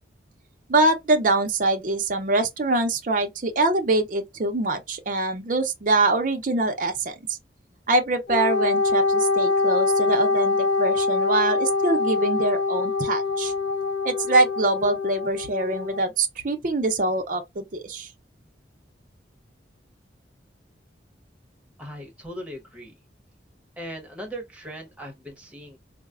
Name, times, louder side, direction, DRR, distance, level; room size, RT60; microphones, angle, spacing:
voice 1, 0.7-7.1 7.9-13.5 14.0-18.1, right 2 dB, 45° right, 0.5 m, -24 dB
Wind instrument woodwind instrument, 8.3-16.0, left 4 dB, 75° left, 0.8 m, -24 dB
voice 2, 21.8-23.0 23.8-25.8, equal, 5° right, 0.9 m, -38 dB
3.9 x 2.0 x 2.3 m
head